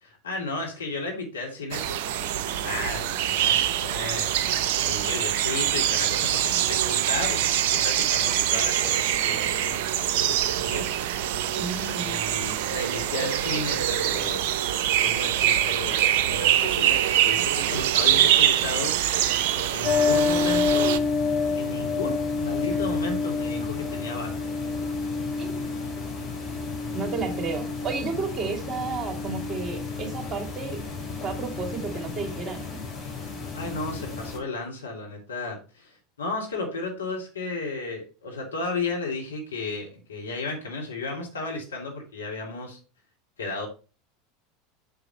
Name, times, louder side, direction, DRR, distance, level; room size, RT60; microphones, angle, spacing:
voice 1, 0.0-4.3 4.8-10.9 11.9-14.5 15.0-19.2 19.5-21.0 21.5-24.3 33.5-42.8 43.4-43.7, left 3 dB, 75° left, 0 dB, 2.9 m, -34 dB
sound 1, 1.7-21.0, right 11 dB, 60° right, 0.6 m, -24 dB
voice 2, 11.6-12.2 25.4-25.8 26.9-30.8 31.2-32.8, right 4 dB, 25° right, 3 dB, 2.7 m, -32 dB
sound 2, 19.8-34.4, left 4 dB, 35° left, 4.9 m, -29 dB
7.9 x 7.0 x 3.2 m, 0.32 s
figure-of-eight pair, 75°, 0 cm